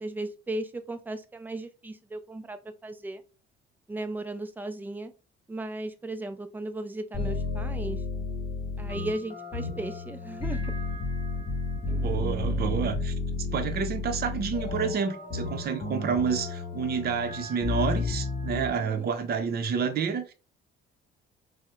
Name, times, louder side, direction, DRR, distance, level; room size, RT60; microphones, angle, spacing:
voice 1, 0.0-3.2 3.9-5.1 5.5-8.0 8.8-10.7 18.5-19.1, right 2 dB, 10° right, 0.4 m, -36 dB
sound 1, 7.1-18.7, left 3 dB, 25° left, 1.6 m, -32 dB
voice 2, 12.0-13.1 13.5-20.3, right 6 dB, 50° right, 0.6 m, -29 dB
4.2 x 2.1 x 2.3 m
cardioid pair, 115°, 21 cm